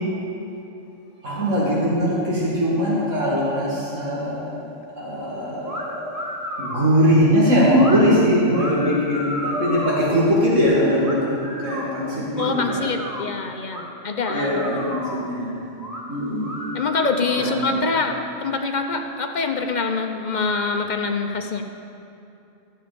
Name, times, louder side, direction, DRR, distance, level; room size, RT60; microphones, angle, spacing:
voice 1, 1.2-4.5 5.0-6.0 6.6-11.3 11.6-12.6 14.3-15.5 16.1-16.5 17.3-17.8, equal, 85° right, -8 dB, 2.7 m, -20 dB
sound 1, 5.7-5.8 6.1-6.9 7.7-8.0 8.5-10.0 11.0-11.9 12.4-13.3 13.7-13.8 14.2-15.3 15.8-16.0 16.4-17.5, equal, 15° right, 1.6 m, -32 dB
voice 2, 12.4-14.8 16.7-21.6, left 4 dB, 45° left, 4 dB, 0.7 m, -25 dB
14.0 x 7.3 x 5.1 m, 2.7 s
omnidirectional pair, 1.3 m